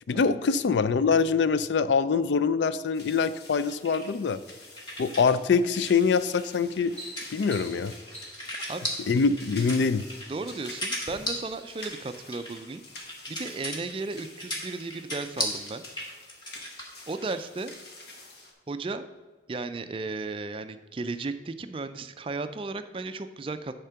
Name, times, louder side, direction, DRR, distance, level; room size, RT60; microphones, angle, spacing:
voice 1, 0.1-4.4 5.0-6.9 7.3-7.9 9.1-10.0, left 5 dB, 80° left, 14 dB, 0.4 m, -24 dB
sound 1, 2.9-18.5, left 2 dB, 65° left, 1.5 m, -48 dB
sound 2, 3.4-5.3 5.6-17.4, equal, 25° left, 1.3 m, -37 dB
sound 3, 6.0-6.2 6.6-9.2 10.0-10.6 11.0-11.1, equal, 5° left, 1.9 m, -45 dB
voice 2, 10.3-12.8 13.3-15.8 17.1-17.7 18.7-19.1 19.5-23.7, right 3 dB, 30° right, 10 dB, 0.3 m, -35 dB
10.0 x 3.7 x 5.7 m, 1.3 s
head